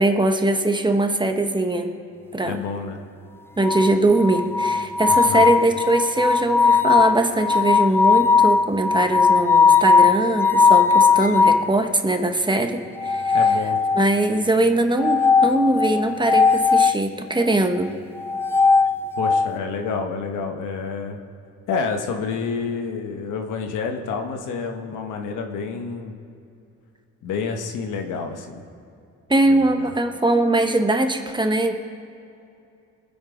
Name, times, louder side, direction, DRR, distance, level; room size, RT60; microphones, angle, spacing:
voice 1, 0.0-1.9 2.3-2.6 3.6-13.4 13.9-17.9 29.3-31.7, right 2 dB, 15° right, 5 dB, 1.2 m, -21 dB
voice 2, 2.4-3.0 5.1-5.5 13.3-13.8 19.2-21.2 21.7-26.1 27.2-28.6 29.5-29.9, left 5 dB, 85° left, 5 dB, 1.4 m, -29 dB
sound 1, 3.6-11.7 13.0-14.3 15.0-17.0 18.2-19.5, left 5 dB, 10° left, 0.3 m, -18 dB
21.5 x 7.9 x 5.1 m, 2.6 s
cardioid pair, 90°, 30 cm